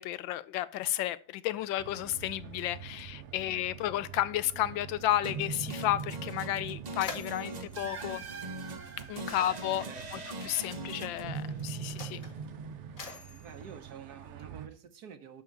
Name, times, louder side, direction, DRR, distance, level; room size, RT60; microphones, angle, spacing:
voice 1, 0.0-8.2 9.0-12.2, left 13 dB, 85° left, 1.3 m, -32 dB
sound 1, 1.8-14.7, right 9 dB, 80° right, 0.6 m, -49 dB
sound 2, 5.2-13.5, right 4 dB, 35° right, 0.6 m, -40 dB
Mechanisms, 6.5-9.2 10.2-10.4 11.2-14.8, left 4 dB, 45° left, 2.2 m, -47 dB
voice 2, 9.9-10.3 13.0-15.4, right 7 dB, 60° right, 1.4 m, -49 dB
11.0 x 3.8 x 7.2 m
omnidirectional pair, 2.0 m